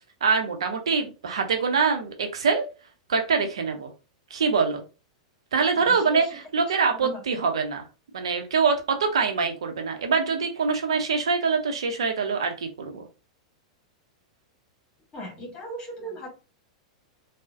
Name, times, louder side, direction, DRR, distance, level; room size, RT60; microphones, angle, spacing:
voice 1, 0.2-2.6 3.1-3.9 4.3-4.8 5.5-7.8 8.1-13.0, right 5 dB, 65° right, 5 dB, 0.6 m, -24 dB
voice 2, 5.8-6.3 6.9-7.2 12.9-13.0 15.1-16.3, right 1 dB, 25° left, 0 dB, 1.5 m, -38 dB
3.7 x 2.0 x 2.5 m, 0.31 s
figure-of-eight pair, 95°, 3 cm